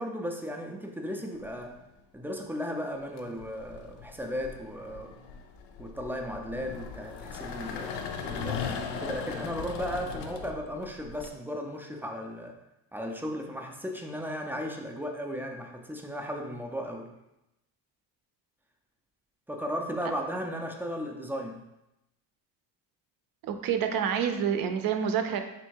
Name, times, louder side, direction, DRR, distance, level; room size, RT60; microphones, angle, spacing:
voice 1, 0.0-1.8 2.1-5.2 5.8-12.6 12.9-17.1 19.5-21.7, equal, 5° right, 2 dB, 0.3 m, -36 dB
sound 1, 1.4-1.9 3.0-11.3, left 6 dB, 80° left, 0.6 m, -38 dB
voice 2, 23.4-25.4, right 8 dB, 55° right, 7 dB, 0.5 m, -28 dB
3.4 x 2.7 x 4.5 m, 0.91 s
cardioid pair, 105°, 41 cm